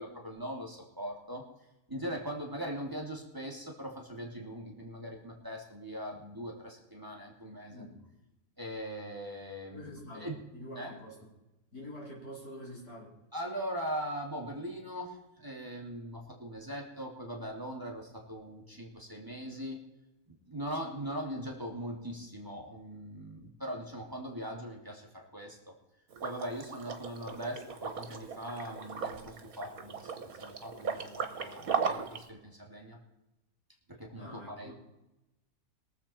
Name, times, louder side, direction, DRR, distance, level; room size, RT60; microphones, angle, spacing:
voice 1, 0.0-1.4 1.9-7.8 8.6-10.4 10.8-10.9 13.3-19.8 20.3-25.7 26.2-30.1 30.4-33.0 33.9-34.7, equal, 15° right, -1 dB, 2.4 m, -40 dB
voice 2, 7.7-8.0 9.7-11.3 11.7-13.1 34.2-34.7, equal, 85° left, -3 dB, 4.5 m, -46 dB
Liquid, 26.1-32.2, right 6 dB, 70° right, 1.7 m, -37 dB
22.5 x 7.6 x 4.3 m, 0.95 s
omnidirectional pair, 1.6 m